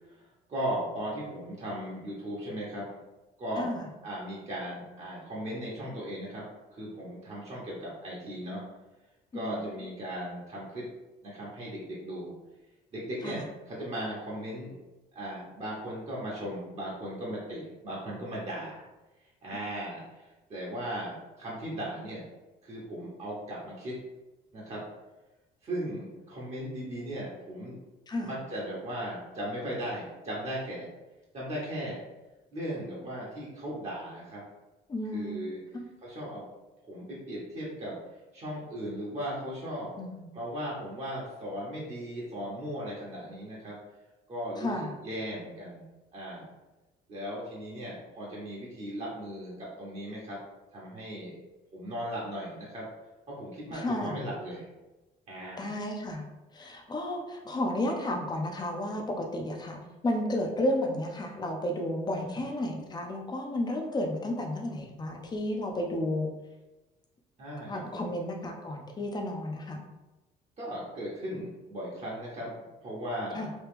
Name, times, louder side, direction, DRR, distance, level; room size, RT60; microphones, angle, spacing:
voice 1, 0.5-2.9 3.4-3.8 4.0-6.4 6.7-8.6 9.3-10.9 11.2-12.3 12.9-14.7 15.1-18.8 19.4-20.2 20.5-22.2 22.6-24.0 24.5-24.8 25.6-27.8 28.2-30.9 31.3-32.0 32.5-34.4 35.1-35.6 36.0-36.4 36.8-37.9 38.3-40.0 40.3-43.8 44.3-44.7 45.0-45.8 46.1-46.5 47.1-50.4 50.7-51.4 51.7-52.9 53.3-54.6 55.3-55.7 62.1-62.4 67.4-68.1 70.6-73.5, equal, 40° right, -6 dB, 1.0 m, -37 dB
voice 2, 9.3-9.7 13.2-13.4 28.1-28.4 34.9-35.4 35.7-35.9 40.0-40.3 44.6-45.0 53.7-54.2 55.6-56.2 56.5-59.8 60.0-66.3 67.7-69.8 73.3-73.5, left 1 dB, 25° left, 2 dB, 0.6 m, -32 dB
3.0 x 2.3 x 3.4 m, 1.1 s
cardioid pair, 110°, 17 cm